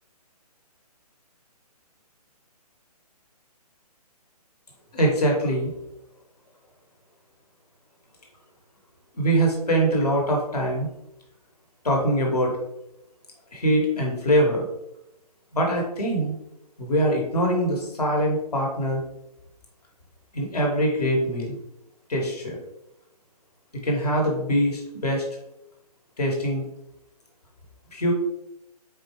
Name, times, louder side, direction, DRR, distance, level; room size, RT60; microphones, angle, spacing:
voice 1, 4.9-5.7 9.1-10.9 11.8-12.6 13.5-14.7 15.5-16.4 16.8-19.0 20.3-21.6 22.1-22.6 23.8-25.2 26.2-26.6 27.9-28.1, right 1 dB, 75° left, -1 dB, 1.6 m, -23 dB
4.7 x 3.5 x 3.1 m, 0.82 s
figure-of-eight pair, 135°, 20 cm